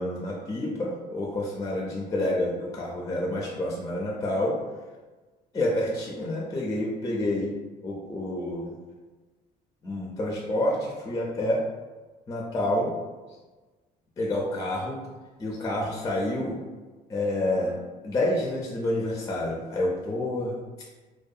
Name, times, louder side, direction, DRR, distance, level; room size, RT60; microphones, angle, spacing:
voice 1, 0.0-4.6 5.5-7.5 7.8-8.7 9.8-11.6 12.3-12.9 14.2-15.0 15.4-16.6 17.1-17.8 18.0-20.6, left 1 dB, 20° left, -2 dB, 0.4 m, -28 dB
2.6 x 2.1 x 2.3 m, 1.3 s
cardioid pair, 110°, 17 cm